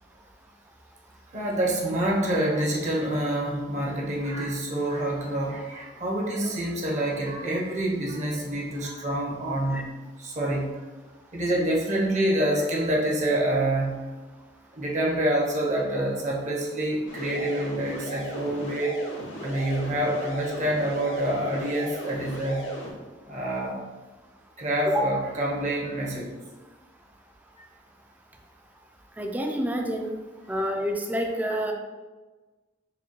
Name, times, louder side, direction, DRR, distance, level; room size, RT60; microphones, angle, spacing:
voice 1, 1.3-10.9 11.3-14.1 14.7-19.0 19.4-22.7 23.2-23.8 24.6-26.4 27.6-27.7 31.5-31.6, right 1 dB, 40° right, -2 dB, 0.7 m, -27 dB
sound 1, 17.1-22.9, equal, 75° left, 0.8 m, -37 dB
voice 2, 29.2-30.1 30.5-31.7, equal, 10° right, 3 dB, 0.3 m, -27 dB
4.7 x 2.2 x 3.0 m, 1.3 s
head